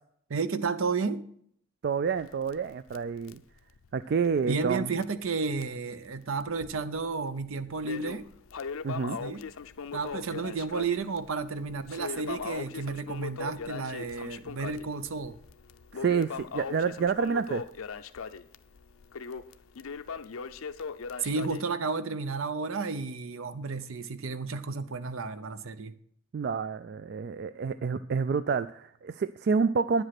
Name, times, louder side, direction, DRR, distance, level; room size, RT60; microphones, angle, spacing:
voice 1, 0.3-1.2 4.5-8.3 9.2-9.4 9.9-15.4 21.2-25.9, right 4 dB, 75° right, 13 dB, 0.7 m, -32 dB
voice 2, 1.8-3.4 3.9-4.9 8.8-9.2 15.9-17.6 26.3-30.0, right 5 dB, 50° right, 13 dB, 0.3 m, -28 dB
Crackle, 2.1-4.8 5.0-5.1 5.6-5.7 6.4-7.0 7.4-21.7, left 5 dB, 80° left, 0.5 m, -39 dB
10.0 x 8.0 x 5.9 m, 0.66 s
head